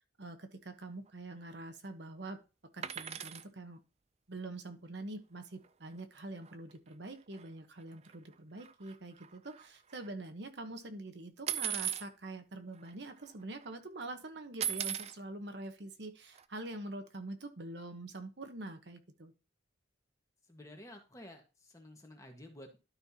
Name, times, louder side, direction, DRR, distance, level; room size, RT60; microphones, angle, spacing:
voice 1, 0.2-2.4 2.7-3.8 4.3-19.3, right 2 dB, 60° right, 7 dB, 1.1 m, -45 dB
sound 1, 2.8-3.5 5.6-5.7 6.0-6.2 6.4-6.5 7.3-7.5 7.9-8.3 8.6-10.1 11.5-12.1 12.8-12.9 13.2-13.6 14.6-15.1 16.4-16.5, right 10 dB, 35° right, 0.4 m, -37 dB
voice 2, 20.5-22.8, left 1 dB, 15° left, 2 dB, 1.6 m, -52 dB
12.0 x 5.6 x 2.9 m, 0.31 s
head